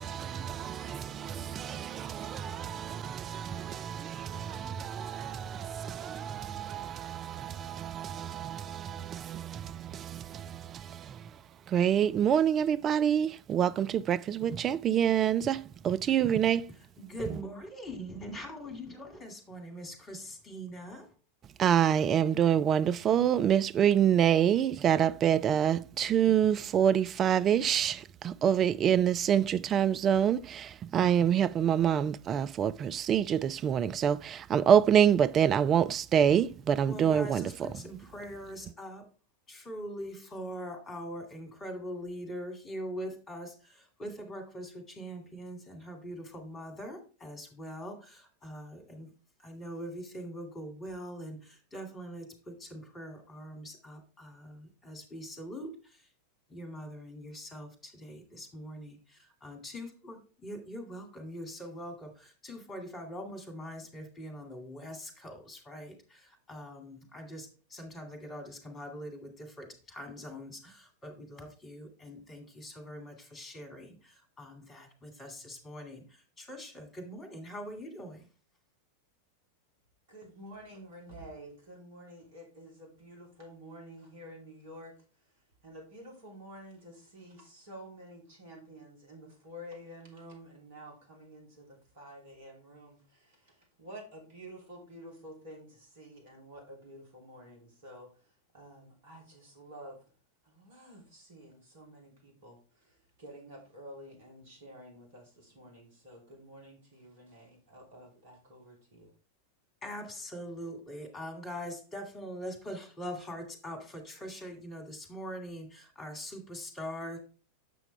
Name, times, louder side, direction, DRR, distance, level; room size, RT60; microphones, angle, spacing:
voice 1, 0.0-11.4 11.7-16.7 21.6-37.7, right 9 dB, 30° right, 0.3 m, -27 dB
voice 2, 17.0-21.1 36.8-39.1 39.5-49.1 49.4-56.1 56.5-78.3 109.8-117.2, equal, 20° left, 2.2 m, -43 dB
voice 3, 80.1-100.0 100.4-109.1, equal, 55° right, 3.1 m, -50 dB
7.7 x 5.9 x 3.3 m
figure-of-eight pair, 90°, 0 cm